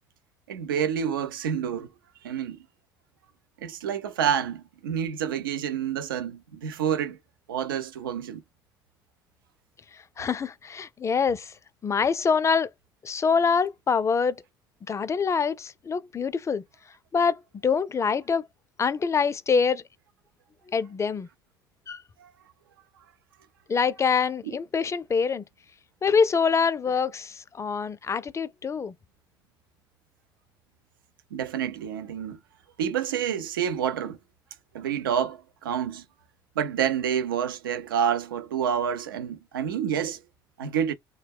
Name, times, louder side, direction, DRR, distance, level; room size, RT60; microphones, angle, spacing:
voice 1, 0.5-1.9 2.2-2.6 3.6-7.2 7.5-8.4 22.2-22.3 31.3-32.4 32.8-34.2 34.7-36.0 36.6-40.2 40.6-40.9, right 8 dB, 85° right, 0.5 m, -28 dB
voice 2, 9.9-11.5 11.8-12.7 13.0-14.4 14.9-16.6 17.1-18.5 18.8-19.8 20.7-21.3 21.9-22.0 23.7-25.4 26.0-28.9, left 5 dB, 25° left, 0.4 m, -25 dB
2.1 x 2.0 x 3.5 m
hypercardioid pair, 60°, 11 cm